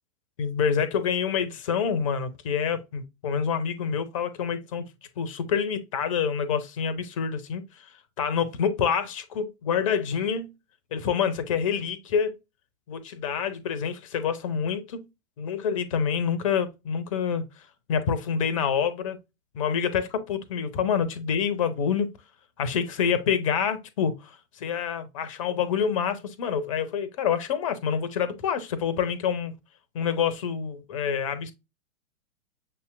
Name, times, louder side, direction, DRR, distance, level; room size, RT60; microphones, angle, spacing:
voice 1, 0.4-4.8 5.2-7.9 8.2-10.5 10.9-12.4 12.9-15.0 15.4-17.4 17.9-19.2 19.5-22.1 22.6-29.5 29.9-31.5, left 7 dB, 25° left, 0.5 m, -27 dB
6.6 x 2.8 x 2.3 m
figure-of-eight pair, 115°, 43 cm